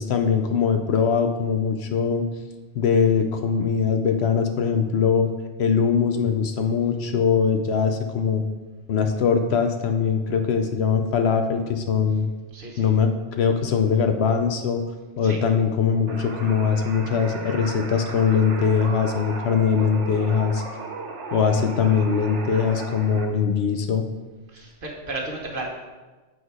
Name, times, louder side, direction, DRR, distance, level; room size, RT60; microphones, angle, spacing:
voice 1, 0.0-2.3 2.8-5.3 5.6-8.4 8.9-12.3 12.8-14.8 15.2-20.6 21.3-24.0, left 6 dB, 65° left, 6 dB, 0.8 m, -21 dB
voice 2, 12.5-12.9 15.2-15.4 24.5-25.7, right 2 dB, 45° right, -1 dB, 1.2 m, -33 dB
sound 1, 16.1-23.3, right 3 dB, 75° right, 1.2 m, -36 dB
7.0 x 4.2 x 4.7 m, 1.3 s
omnidirectional pair, 1.2 m